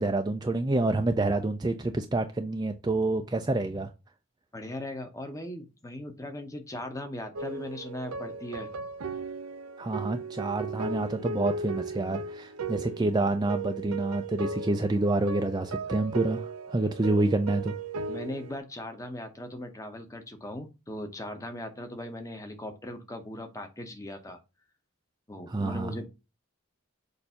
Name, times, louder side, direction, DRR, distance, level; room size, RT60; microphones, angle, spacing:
voice 1, 0.0-3.9 9.8-17.8 25.5-25.9, right 2 dB, 20° right, 0.4 m, -28 dB
voice 2, 4.5-8.7 18.1-24.4 25.3-26.1, left 1 dB, 15° left, 0.8 m, -39 dB
sound 1, 7.4-18.6, right 4 dB, 90° right, 0.6 m, -37 dB
6.6 x 2.6 x 5.6 m
head